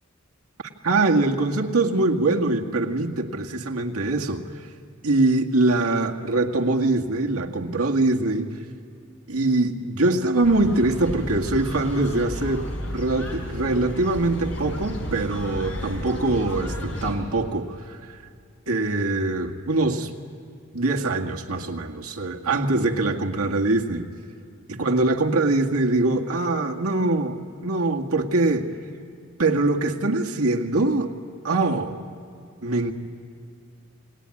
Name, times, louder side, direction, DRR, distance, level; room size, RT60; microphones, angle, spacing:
voice 1, 0.8-4.5 5.0-8.6 9.3-12.7 12.9-18.2 18.7-20.1 20.7-24.1 24.8-28.7 29.4-31.1 31.4-32.0 32.6-32.9, right 2 dB, 85° right, 2 dB, 1.9 m, -23 dB
sound 1, 10.4-17.1, equal, 60° left, 5.0 m, -32 dB
28.5 x 20.0 x 9.7 m, 2.4 s
head